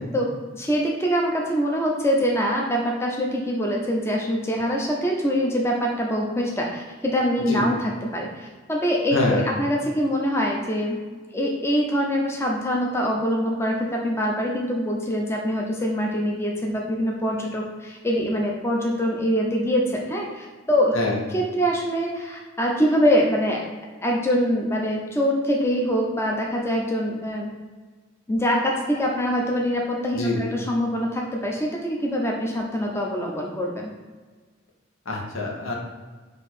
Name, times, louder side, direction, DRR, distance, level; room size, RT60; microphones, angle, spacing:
voice 1, 0.1-11.0 11.3-20.9 21.3-23.6 24.0-27.5 28.3-33.9, equal, 15° left, -1 dB, 0.5 m, -24 dB
voice 2, 9.1-9.4 20.9-21.2 30.1-30.4 35.1-35.7, left 2 dB, 90° left, -1 dB, 0.9 m, -25 dB
4.6 x 2.7 x 4.1 m, 1.4 s
head